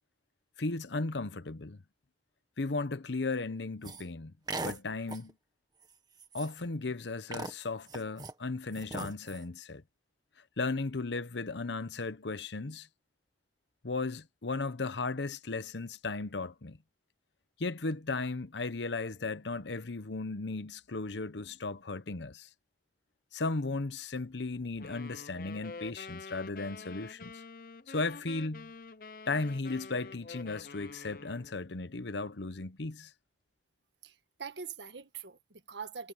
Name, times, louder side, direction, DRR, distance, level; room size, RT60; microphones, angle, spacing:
voice 1, 0.6-1.8 2.6-4.3 4.6-5.3 6.3-9.8 10.6-12.9 13.8-16.8 17.6-22.5 23.3-27.4 27.9-28.7 29.3-33.1, left 3 dB, 90° left, 0.9 m, -35 dB
sound 1, 3.8-4.0 4.5-4.8 5.1-5.3 5.8-5.9 6.2-6.7 7.3-8.3 8.7-9.4, right 2 dB, 25° right, 1.6 m, -39 dB
sound 2, 24.8-31.6, left 4 dB, 50° left, 0.7 m, -48 dB
voice 2, 34.0-36.1, right 6 dB, 90° right, 1.7 m, -43 dB
head